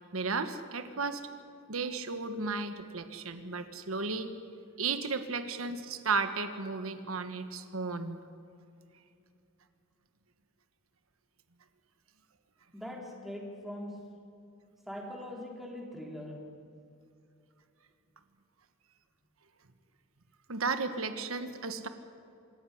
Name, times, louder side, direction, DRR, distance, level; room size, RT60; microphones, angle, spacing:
voice 1, 0.1-1.2 1.7-4.3 4.8-8.2 20.5-21.9, right 4 dB, 75° right, 9 dB, 1.3 m, -34 dB
voice 2, 12.7-14.1 14.9-16.5, left 1 dB, ahead, -1 dB, 3.5 m, -42 dB
26.0 x 14.5 x 10.0 m, 2.6 s
head